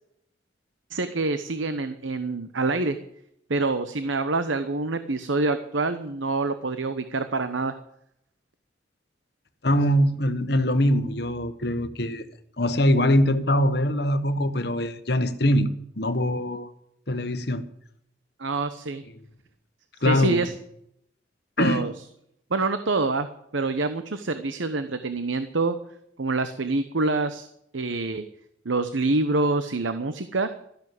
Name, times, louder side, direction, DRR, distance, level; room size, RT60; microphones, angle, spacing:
voice 1, 0.9-3.0 3.5-7.7 18.4-19.0 20.0-20.5 21.6-21.9 22.5-23.3 23.5-25.8 26.2-27.5 27.7-28.2 28.6-30.5, right 3 dB, 80° right, 1.0 m, -26 dB
voice 2, 9.6-12.3 12.6-16.7 17.1-17.6 20.0-20.5 21.6-21.8, equal, 55° left, 1.3 m, -23 dB
13.5 x 11.0 x 7.8 m
head